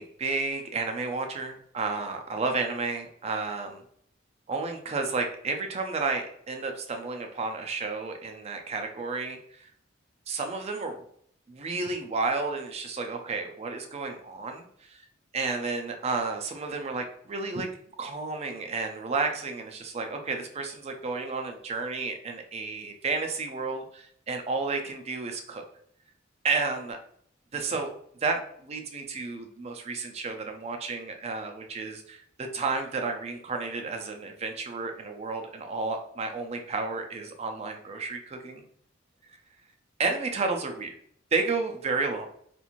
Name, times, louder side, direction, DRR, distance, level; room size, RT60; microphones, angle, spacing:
voice 1, 0.0-3.8 4.5-9.7 10.3-11.0 11.5-15.0 15.3-17.7 18.0-25.6 26.4-27.0 27.5-27.9 28.2-38.6 40.0-40.9 41.3-42.3, right 4 dB, 30° right, 5 dB, 0.4 m, -31 dB
3.0 x 2.5 x 2.5 m, 0.64 s
head